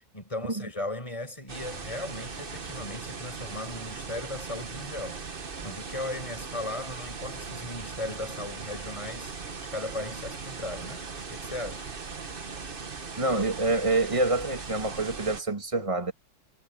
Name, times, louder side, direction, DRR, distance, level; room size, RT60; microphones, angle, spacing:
voice 1, 0.0-5.2 5.6-9.3 9.6-11.0 11.3-11.9, left 2 dB, 20° left, 5.9 m, -37 dB
sound 1, 1.5-15.4, right 5 dB, 35° right, 1.3 m, -39 dB
voice 2, 13.2-16.1, right 2 dB, 20° right, 2.6 m, -27 dB
omnidirectional pair, 1.7 m